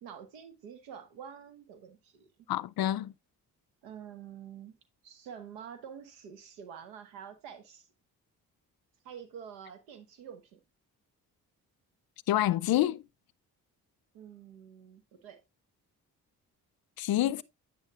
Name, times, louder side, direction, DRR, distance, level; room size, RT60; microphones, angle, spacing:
voice 1, 0.0-2.3 3.8-4.8 5.0-7.9 9.0-10.6 14.1-15.4 17.2-17.4, right 8 dB, 90° right, 1.1 m, -47 dB
voice 2, 2.5-3.1 12.3-13.0 17.0-17.4, left 14 dB, 60° left, 0.6 m, -27 dB
9.0 x 6.9 x 2.4 m
hypercardioid pair, 45°, 41 cm